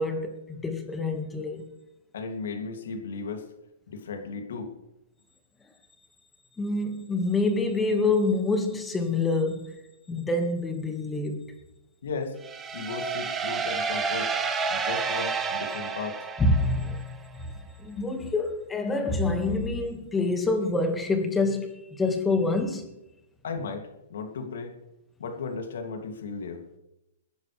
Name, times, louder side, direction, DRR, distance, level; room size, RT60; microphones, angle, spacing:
voice 1, 0.0-1.7 6.6-9.8 10.1-11.5 16.4-17.0 17.8-22.9, left 2 dB, 10° left, 2.0 m, -26 dB
voice 2, 2.1-3.5 3.9-4.7 12.0-12.4 12.7-14.3 14.7-16.2 23.4-24.8 25.2-26.6, left 4 dB, 75° left, 2.8 m, -35 dB
sound 1, 12.4-17.1, right 5 dB, 15° right, 1.4 m, -30 dB
24.5 x 10.5 x 3.5 m
hypercardioid pair, 150°, 0 cm